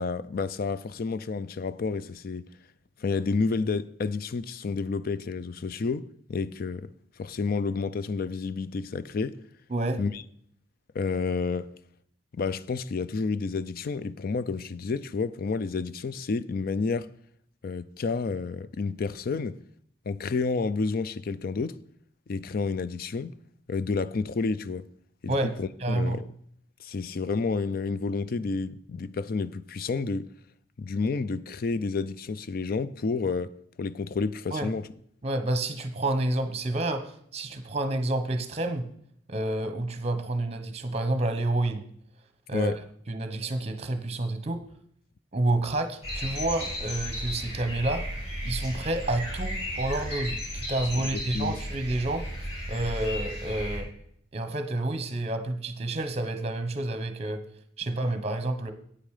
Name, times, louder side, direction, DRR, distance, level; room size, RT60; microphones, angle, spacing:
voice 1, 0.0-2.4 3.0-6.9 7.2-9.4 10.0-10.2 10.9-11.7 12.3-17.1 17.6-19.6 20.1-21.8 22.3-23.3 23.7-24.8 25.2-26.2 26.8-30.3 30.8-33.5 33.8-34.9 42.5-42.8 50.9-51.5, left 4 dB, 55° left, 0.4 m, -30 dB
voice 2, 25.8-26.2 34.5-34.7 35.2-38.9 39.3-41.9 42.5-42.7 43.1-44.6 45.3-48.1 48.4-52.3 52.7-53.9 54.3-57.4 57.8-58.7, right 2 dB, 35° right, 1.0 m, -29 dB
sound 1, 46.0-53.8, equal, 40° left, 5.3 m, -34 dB
9.0 x 8.8 x 4.9 m
head